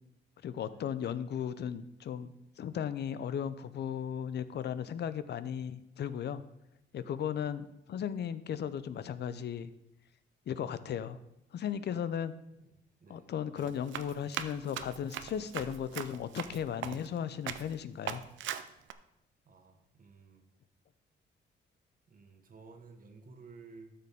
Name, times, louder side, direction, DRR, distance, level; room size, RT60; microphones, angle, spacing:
voice 1, 0.4-6.4 6.9-9.7 10.5-11.2 11.5-12.3 13.1-18.2, left 8 dB, 60° left, 14 dB, 0.6 m, -36 dB
voice 2, 11.9-12.2 12.5-12.7 13.0-13.3 19.4-20.4 22.1-23.9, right 4 dB, 45° right, 5 dB, 1.5 m, -55 dB
Run, 13.6-17.2 17.5-17.7 18.1-18.9, right 10 dB, 70° right, 0.6 m, -40 dB
12.5 x 6.8 x 3.6 m, 0.83 s
cardioid pair, 90°, 20 cm